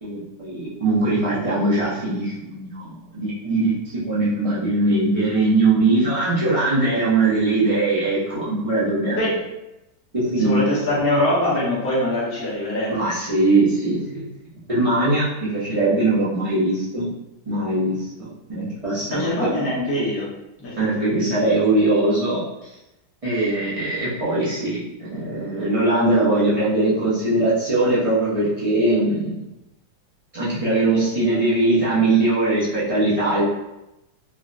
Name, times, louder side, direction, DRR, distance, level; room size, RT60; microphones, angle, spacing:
voice 1, 0.0-3.7 4.1-9.2 10.1-10.6 12.9-14.3 14.7-17.1 17.5-19.3 20.8-22.4 23.2-29.4 30.3-33.4, right 2 dB, 45° right, -10 dB, 0.4 m, -21 dB
voice 2, 10.4-13.1 19.1-20.3 20.6-21.1, left 1 dB, 20° left, -7 dB, 0.3 m, -23 dB
3.4 x 2.2 x 2.5 m, 0.92 s
omnidirectional pair, 1.9 m